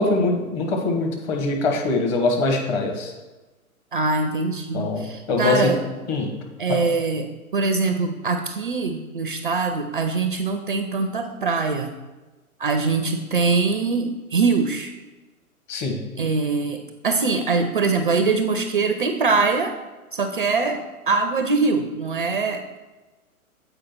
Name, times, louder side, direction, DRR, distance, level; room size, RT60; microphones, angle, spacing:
voice 1, 0.0-3.1 4.7-5.7 6.1-6.3 6.7-6.8 15.7-16.0, left 2 dB, 30° left, 1 dB, 1.2 m, -23 dB
voice 2, 3.9-5.8 6.6-7.3 7.5-11.9 12.6-14.9 16.2-19.7 20.1-20.8 21.1-22.6, right 4 dB, 40° right, 7 dB, 0.4 m, -23 dB
7.7 x 4.7 x 4.4 m, 1.2 s
figure-of-eight pair, 120°, 43 cm